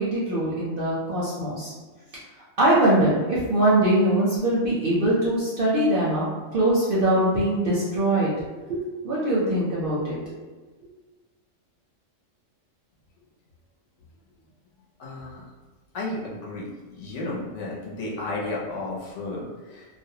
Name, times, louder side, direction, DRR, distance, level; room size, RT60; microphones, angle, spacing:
voice 1, 0.0-1.7 2.6-6.3 6.5-8.3 8.7-10.2, right 1 dB, 60° right, -7 dB, 0.6 m, -22 dB
voice 2, 15.0-15.5 15.9-16.7 17.0-19.9, left 2 dB, 70° left, -3 dB, 0.9 m, -33 dB
2.4 x 2.0 x 2.7 m, 1.3 s
omnidirectional pair, 1.4 m